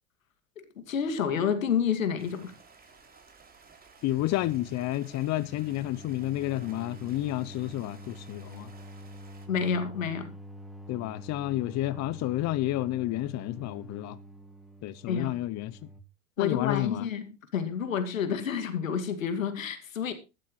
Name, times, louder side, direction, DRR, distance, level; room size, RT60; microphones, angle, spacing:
voice 1, 0.6-2.5 9.5-10.3 15.1-15.3 16.4-20.1, left 7 dB, 90° left, 2.4 m, -29 dB
Stream, 2.2-9.5, right 4 dB, 25° right, 3.7 m, -55 dB
voice 2, 4.0-8.7 10.9-14.2 14.8-15.8 16.4-17.1, left 16 dB, 45° left, 0.8 m, -30 dB
sound 1, 4.2-16.0, equal, ahead, 1.6 m, -46 dB
14.5 x 12.0 x 3.2 m
hypercardioid pair, 90°, 39 cm